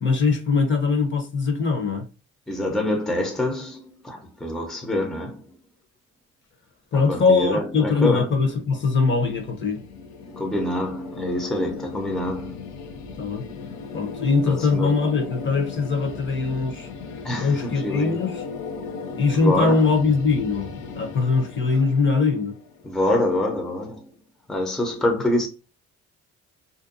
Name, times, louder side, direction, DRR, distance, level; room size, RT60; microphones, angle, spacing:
voice 1, 0.0-2.0 6.9-9.8 13.2-13.4 13.9-16.9 17.4-18.4 19.2-22.5 25.1-25.2, left 4 dB, 40° left, 0.8 m, -22 dB
voice 2, 2.5-5.5 6.9-8.3 10.4-12.7 14.5-15.0 17.2-18.2 19.4-19.9 20.8-20.9 22.8-24.1 24.5-25.5, left 1 dB, ahead, 0.6 m, -26 dB
sound 1, 8.3-23.3, left 5 dB, 75° left, 0.6 m, -37 dB
2.6 x 2.2 x 2.5 m
cardioid pair, 90°, 30 cm